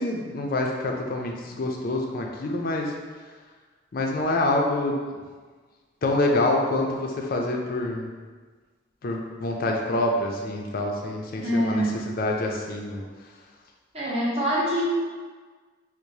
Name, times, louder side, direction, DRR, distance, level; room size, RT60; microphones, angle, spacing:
voice 1, 0.0-2.9 3.9-5.1 6.0-8.1 9.0-11.8 12.2-13.0, left 2 dB, 50° left, 1 dB, 0.4 m, -26 dB
voice 2, 11.4-11.9 13.9-14.8, equal, 35° right, -6 dB, 0.7 m, -24 dB
4.6 x 2.1 x 2.7 m, 1.4 s
head